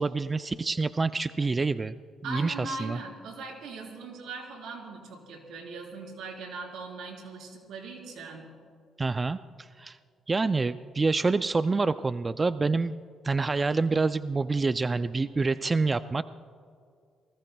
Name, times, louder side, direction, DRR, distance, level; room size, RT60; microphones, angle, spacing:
voice 1, 0.0-2.0 2.3-3.0 9.0-10.0 10.3-13.0 13.2-16.2, right 3 dB, 25° right, 12 dB, 0.3 m, -27 dB
voice 2, 2.2-8.5, right 3 dB, 85° right, 0 dB, 3.9 m, -40 dB
28.0 x 19.0 x 2.3 m, 2.2 s
cardioid pair, 90°, 0 cm